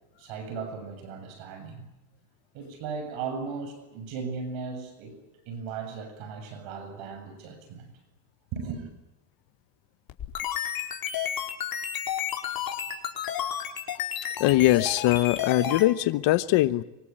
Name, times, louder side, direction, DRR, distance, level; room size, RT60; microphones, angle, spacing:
voice 1, 0.2-1.9 2.5-5.2 5.5-8.0 8.5-8.9, right 5 dB, 65° right, 8 dB, 7.1 m, -37 dB
sound 1, 10.1-15.9, left 9 dB, 45° left, 4.6 m, -31 dB
voice 2, 14.4-16.8, left 16 dB, 60° left, 14 dB, 1.2 m, -22 dB
25.0 x 24.5 x 8.9 m, 0.98 s
supercardioid pair, 105°, 50 cm